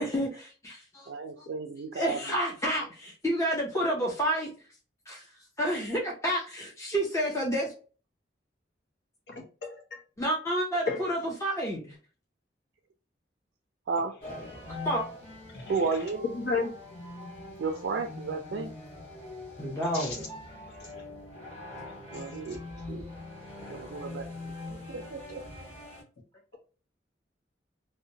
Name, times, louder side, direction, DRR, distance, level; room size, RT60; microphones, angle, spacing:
voice 1, 0.0-1.1 2.0-4.5 5.1-5.2 5.6-7.7 10.2-11.9 14.8-15.0 19.6-20.2, equal, 15° left, -4 dB, 0.5 m, -29 dB
voice 2, 1.1-2.2 13.9-14.1 15.7-16.2 17.6-18.7 22.1-22.6 22.9-23.1 23.7-24.3 24.7-25.4, right 4 dB, 70° right, 4 dB, 0.3 m, -33 dB
voice 3, 9.3-10.0 10.9-11.1 15.5-15.8 16.3-16.7 19.9-20.2 20.9-21.0 22.1-22.2, left 4 dB, 60° left, 0 dB, 0.8 m, -33 dB
sound 1, 14.2-26.0, left 2 dB, 35° left, 1.5 m, -43 dB
2.8 x 2.1 x 2.6 m, 0.37 s
head